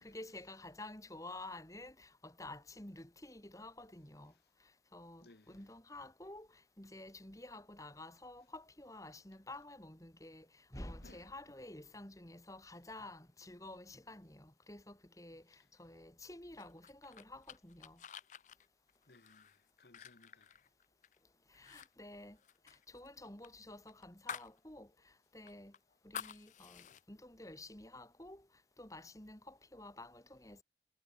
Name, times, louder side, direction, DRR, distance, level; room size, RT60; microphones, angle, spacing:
voice 1, 0.0-4.3 4.6-18.0 21.5-22.4 22.6-25.7 26.0-28.5 28.8-30.6, left 2 dB, 20° left, 2.4 m, -51 dB
voice 2, 5.2-5.7 11.0-11.3 19.1-20.5, left 2 dB, 65° left, 1.6 m, -63 dB
sound 1, 16.6-21.2 21.5-21.9 22.1-24.6 24.9-25.0 25.5-27.0, left 8 dB, 45° left, 0.4 m, -50 dB
head